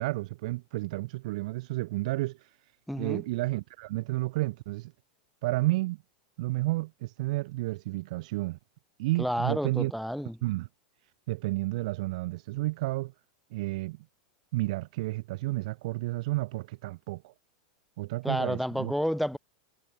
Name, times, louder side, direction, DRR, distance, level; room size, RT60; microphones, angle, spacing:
voice 1, 0.0-2.5 3.0-4.9 5.4-6.0 6.4-8.6 9.0-9.9 10.4-10.7 11.3-13.1 13.5-14.0 14.5-17.3 18.0-18.9, right 20 dB, 65° right, 0.9 m, -31 dB
voice 2, 2.9-3.2 9.2-10.3 18.2-19.4, equal, ahead, 3.1 m, -30 dB
supercardioid pair, 125°, 4 cm